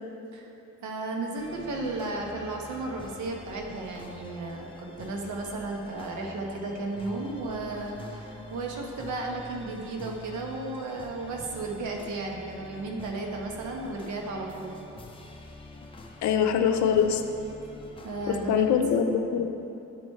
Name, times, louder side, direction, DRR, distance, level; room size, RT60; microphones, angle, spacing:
voice 1, 0.8-14.7 18.0-18.7, right 2 dB, 80° right, 0 dB, 1.0 m, -34 dB
sound 1, 1.4-18.8, left 2 dB, 20° left, 0.5 m, -46 dB
voice 2, 16.2-17.2 18.3-19.4, left 7 dB, 75° left, 7 dB, 0.5 m, -23 dB
10.5 x 4.3 x 3.1 m, 2.9 s
cardioid pair, 155°, 29 cm